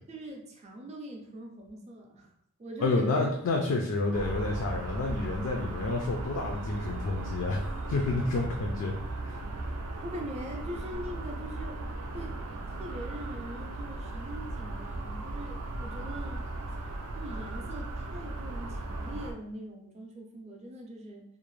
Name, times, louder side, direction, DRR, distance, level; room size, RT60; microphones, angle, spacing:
voice 1, 0.1-2.3 2.6-3.4 10.0-11.8 12.1-12.4 12.7-16.5 17.2-21.2, equal, 30° right, 0 dB, 0.5 m, -42 dB
voice 2, 2.8-8.9 9.3-9.4, left 3 dB, 60° left, 1 dB, 0.3 m, -29 dB
sound 1, 4.1-19.3, right 2 dB, 85° right, 0.4 m, -37 dB
2.5 x 2.0 x 3.1 m, 0.72 s
head